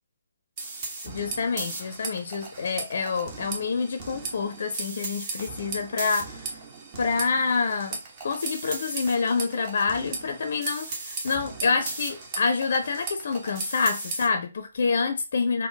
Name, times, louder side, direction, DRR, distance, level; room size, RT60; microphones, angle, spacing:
sound 1, 0.6-14.3, right 3 dB, 30° right, 0.9 m, -37 dB
voice 1, 1.0-6.5 7.0-15.7, left 4 dB, 50° left, 0.5 m, -27 dB
3.8 x 2.2 x 3.9 m
figure-of-eight pair, 140°, 0 cm